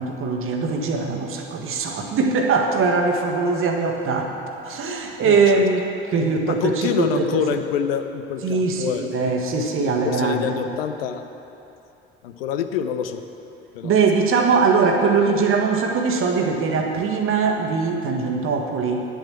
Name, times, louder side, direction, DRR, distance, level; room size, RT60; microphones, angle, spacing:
voice 1, 0.0-4.4 4.6-7.4 8.4-10.6 13.8-19.0, right 4 dB, 40° right, 2 dB, 1.4 m, -21 dB
voice 2, 5.2-5.6 6.5-9.3 10.0-11.2 12.2-13.2 13.7-13.9, left 8 dB, 65° left, 8 dB, 0.6 m, -26 dB
9.6 x 7.4 x 7.3 m, 2.8 s
figure-of-eight pair, 55°, 31 cm